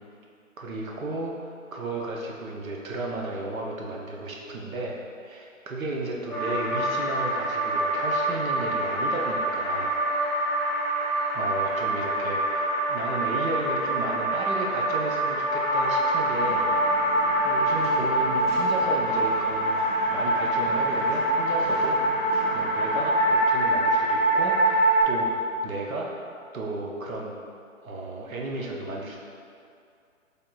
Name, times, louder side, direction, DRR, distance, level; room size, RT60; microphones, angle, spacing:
voice 1, 0.6-10.0 11.3-17.0 17.4-19.8 20.1-22.0 22.5-26.2 26.5-27.3 27.8-29.2, right 2 dB, 80° right, -1 dB, 0.7 m, -34 dB
sound 1, 6.3-25.0, right 1 dB, 10° left, 0.7 m, -25 dB
sound 2, 16.4-23.4, equal, 40° right, 1.3 m, -39 dB
3.4 x 2.3 x 4.0 m, 2.4 s
hypercardioid pair, 165°, 41 cm